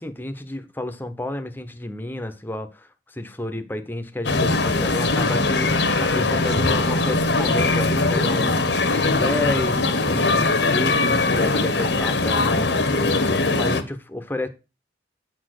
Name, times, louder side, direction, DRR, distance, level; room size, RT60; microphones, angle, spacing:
voice 1, 0.0-8.7 9.0-12.7 13.0-14.5, left 1 dB, 10° left, 0.8 m, -31 dB
sound 1, 4.2-13.8, left 3 dB, 75° left, 1.1 m, -21 dB
8.8 x 4.2 x 6.4 m
head